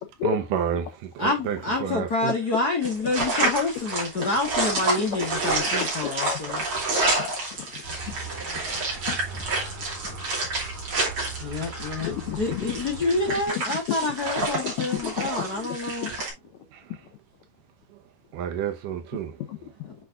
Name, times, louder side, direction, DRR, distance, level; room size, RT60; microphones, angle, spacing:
voice 1, 0.2-0.9 1.2-2.3 18.3-19.3, right 9 dB, 75° right, 2.5 m, -29 dB
voice 2, 1.2-6.6 11.4-16.1 19.9-20.0, left 2 dB, 40° left, 1.5 m, -28 dB
sound 1, 2.8-16.3, right 2 dB, 40° right, 3.2 m, -29 dB
voice 3, 6.2-6.6 6.9-7.6 7.9-8.2 9.1-9.2 12.0-12.6 14.4-15.3 15.6-15.8 16.0-16.1 19.5-20.0, left 11 dB, 75° left, 1.7 m, -32 dB
Motor vehicle (road) / Siren, 7.8-13.5, right 4 dB, 20° right, 2.3 m, -39 dB
8.2 x 5.0 x 2.6 m
omnidirectional pair, 4.0 m